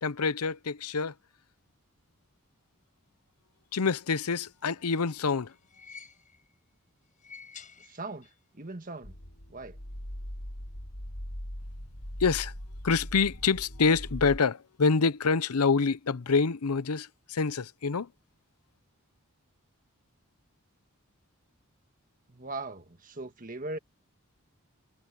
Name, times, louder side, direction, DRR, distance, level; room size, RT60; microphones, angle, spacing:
voice 1, 0.0-1.1 3.7-5.5 12.2-12.5 12.8-18.1, left 4 dB, 90° left, 0.7 m, -26 dB
sound 1, 4.7-6.6 7.1-8.5 8.7-8.8 9.9-10.0, left 5 dB, 35° left, 4.9 m, -51 dB
voice 2, 7.8-9.2 9.5-9.8 22.3-23.8, right 2 dB, 35° right, 1.6 m, -40 dB
sound 2, 9.0-14.4, equal, 70° left, 5.4 m, -40 dB
head